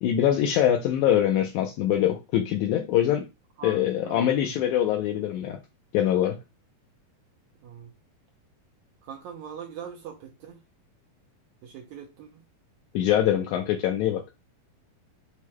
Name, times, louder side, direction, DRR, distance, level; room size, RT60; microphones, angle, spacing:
voice 1, 0.0-3.3 3.6-5.6 5.9-6.4 12.9-14.2, left 11 dB, 85° left, 1.7 m, -23 dB
voice 2, 3.6-4.5 7.6-7.9 9.0-10.6 11.6-12.4, right 7 dB, 80° right, 1.7 m, -42 dB
6.4 x 2.2 x 2.9 m
omnidirectional pair, 3.9 m